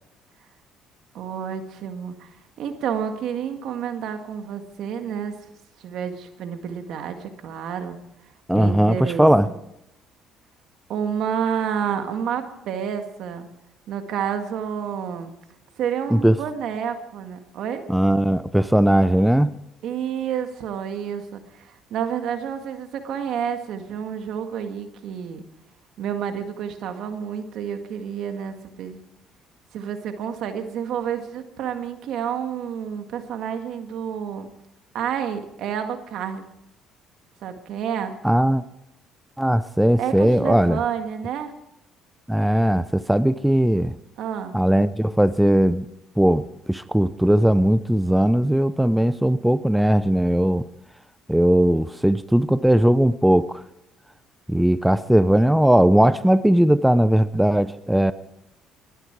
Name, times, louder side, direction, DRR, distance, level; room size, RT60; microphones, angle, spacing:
voice 1, 1.1-5.3 5.8-8.0 8.5-9.5 10.9-13.5 13.9-15.3 15.8-17.8 19.8-25.4 26.0-29.0 29.7-34.5 34.9-36.4 37.4-38.2 40.0-41.5 44.2-44.6, right 8 dB, 70° right, 6 dB, 1.9 m, -29 dB
voice 2, 8.5-9.5 16.1-16.4 17.9-19.5 38.2-38.6 39.4-40.8 42.3-43.9 44.5-45.9 46.2-50.7 51.3-53.6 54.5-58.1, right 1 dB, 5° right, 15 dB, 0.5 m, -18 dB
21.0 x 11.5 x 4.7 m, 0.85 s
cardioid pair, 90°, 0 cm